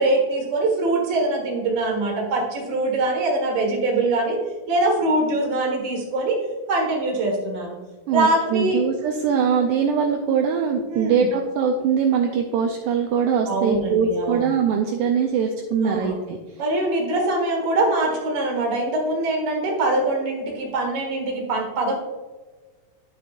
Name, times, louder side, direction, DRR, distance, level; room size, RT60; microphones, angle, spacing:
voice 1, 0.0-4.4 4.7-6.4 6.7-7.7 8.1-8.8 10.9-11.3 13.5-14.5 15.8-16.2 16.6-22.0, right 2 dB, 50° right, 0 dB, 2.2 m, -23 dB
voice 2, 8.1-16.4, right 6 dB, 80° right, 2 dB, 1.9 m, -22 dB
10.5 x 7.1 x 2.5 m, 1.3 s
omnidirectional pair, 4.1 m